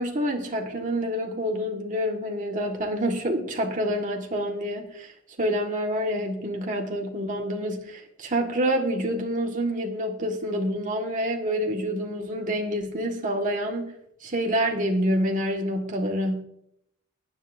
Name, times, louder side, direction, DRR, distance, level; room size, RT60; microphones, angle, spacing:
voice 1, 0.0-5.1 5.4-13.9 14.2-16.4, equal, 40° right, 1 dB, 1.7 m, -27 dB
19.5 x 10.0 x 2.7 m, 0.73 s
head